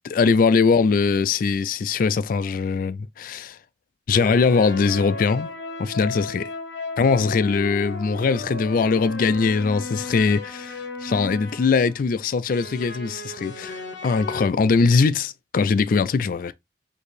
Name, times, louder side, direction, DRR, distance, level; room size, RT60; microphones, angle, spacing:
voice 1, 0.1-3.6 4.1-5.5 5.8-6.5 7.0-16.5, left 4 dB, 50° left, 0.3 m, -21 dB
sound 1, 4.1-12.1 12.5-14.5, left 3 dB, 75° left, 0.8 m, -35 dB
4.5 x 2.7 x 3.2 m
head